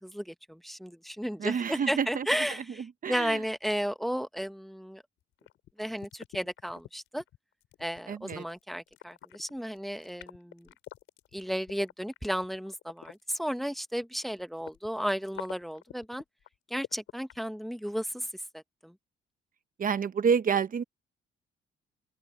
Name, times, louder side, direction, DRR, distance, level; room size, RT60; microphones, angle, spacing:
voice 1, 0.0-2.8 3.1-5.0 5.8-7.2 7.8-10.7 11.3-16.2 16.7-18.3 18.5-18.9, equal, ahead, 1.2 m, -33 dB
voice 2, 1.4-2.3 3.0-3.4 8.1-8.4 19.8-20.8, right 6 dB, 45° right, 0.9 m, -28 dB
sound 1, 5.4-13.6 13.9-17.4, left 13 dB, 80° left, 3.9 m, -47 dB
open air
cardioid pair, 90°, 20 cm